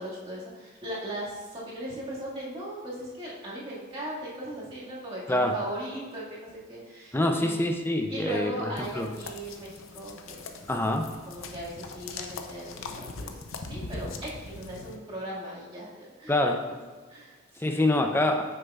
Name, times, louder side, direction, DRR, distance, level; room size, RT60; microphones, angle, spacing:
voice 1, 0.0-7.6 8.1-10.5 11.3-13.4 13.7-15.9 16.2-16.3 17.1-17.8, right 1 dB, 25° right, -7 dB, 1.9 m, -38 dB
voice 2, 7.1-9.1 10.7-11.1 16.3-16.6 17.6-18.4, left 1 dB, 10° left, 4 dB, 0.4 m, -25 dB
sound 1, 8.8-15.0, left 3 dB, 75° left, 0.6 m, -41 dB
9.1 x 6.6 x 2.4 m, 1.4 s
head